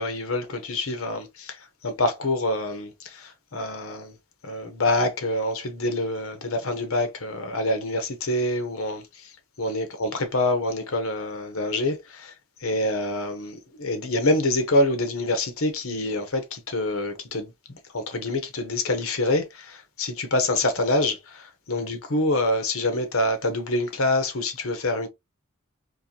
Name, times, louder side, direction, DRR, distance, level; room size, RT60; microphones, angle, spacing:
voice 1, 0.0-4.1 4.4-9.3 9.6-12.3 12.6-17.5 17.9-25.1, left 2 dB, 70° left, 0.9 m, -26 dB
4.4 x 2.5 x 2.8 m
head